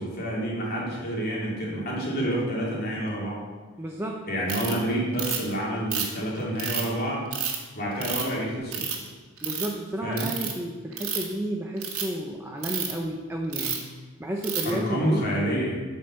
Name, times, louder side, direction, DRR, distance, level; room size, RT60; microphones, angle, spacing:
voice 1, 0.0-3.4 4.3-7.3 7.7-8.9 10.0-10.3 14.6-15.8, right 1 dB, 45° left, -4 dB, 2.7 m, -28 dB
voice 2, 3.8-4.2 9.4-13.9 14.2-15.3, right 1 dB, 10° right, 0 dB, 0.7 m, -32 dB
Ratchet pawl, 4.5-4.7 5.2-5.5 5.9-6.9 7.3-7.6 8.0-8.3 8.7-9.1 9.4-9.7 10.2-10.5 10.9-11.3 11.8-12.0 12.6-12.9 13.5-13.8 14.4-14.7, right 8 dB, 80° right, 1.6 m, -29 dB
8.3 x 5.5 x 6.9 m, 1.4 s
head